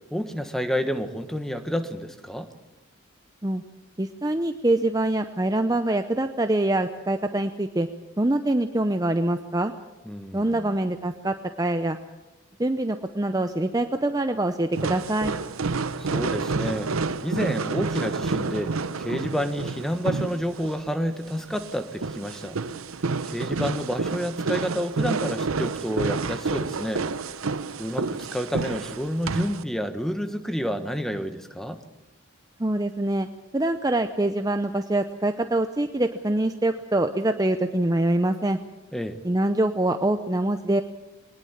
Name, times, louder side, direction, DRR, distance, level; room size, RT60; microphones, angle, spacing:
voice 1, 0.1-2.5 10.0-10.8 16.0-16.9 17.2-22.6 23.2-27.1 27.8-31.8 38.9-39.2, equal, ahead, 8 dB, 1.3 m, -29 dB
voice 2, 4.0-7.9 8.2-9.7 10.3-12.0 12.6-15.3 32.6-33.3 33.5-38.6 39.2-40.8, right 1 dB, 20° right, 7 dB, 0.6 m, -24 dB
sound 1, 14.7-29.6, right 4 dB, 90° right, 0.8 m, -29 dB
22.0 x 19.5 x 7.3 m, 1.1 s
head